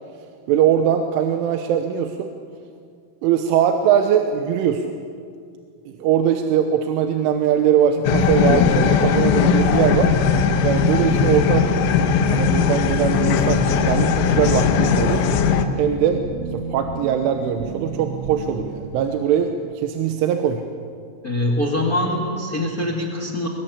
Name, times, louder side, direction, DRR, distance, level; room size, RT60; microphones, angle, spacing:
voice 1, 0.5-2.3 3.2-5.0 5.9-10.1 10.6-11.7 12.3-15.2 15.8-16.2 16.5-20.6, right 9 dB, 85° right, 5 dB, 3.5 m, -21 dB
sound 1, 8.1-15.7, left 6 dB, 80° left, 3.7 m, -18 dB
sound 2, 10.0-18.7, right 4 dB, 50° right, 4.7 m, -32 dB
voice 2, 21.2-23.5, left 1 dB, 60° left, 1 dB, 0.9 m, -23 dB
22.0 x 21.5 x 8.6 m, 2.3 s
omnidirectional pair, 5.7 m